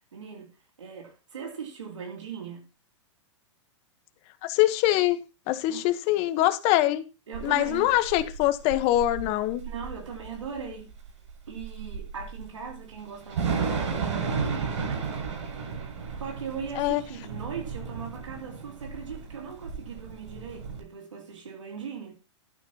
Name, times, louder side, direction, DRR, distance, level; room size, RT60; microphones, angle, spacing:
voice 1, 0.1-0.5 0.8-2.6 5.7-5.9 7.3-7.9 9.6-10.9 11.5-15.1 16.2-22.2, right 6 dB, 90° right, 2.9 m, -39 dB
voice 2, 4.4-7.0 7.4-9.6 16.8-17.0, left 15 dB, 40° left, 1.2 m, -24 dB
Thunder / Rain, 7.3-20.8, right 5 dB, 70° right, 7.2 m, -34 dB
12.0 x 10.5 x 2.9 m
hypercardioid pair, 120°, 16 cm